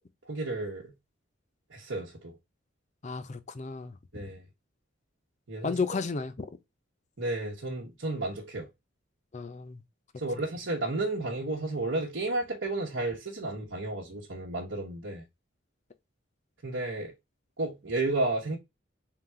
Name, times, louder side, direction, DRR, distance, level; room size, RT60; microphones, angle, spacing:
voice 1, 0.3-0.9 1.7-2.3 4.1-4.4 5.5-5.8 7.2-8.7 10.2-15.2 16.6-17.1 17.6-18.6, right 2 dB, 85° right, 1.1 m, -32 dB
voice 2, 3.0-4.0 5.6-6.5 9.3-9.8, left 4 dB, 35° left, 0.5 m, -33 dB
3.8 x 2.4 x 4.4 m
head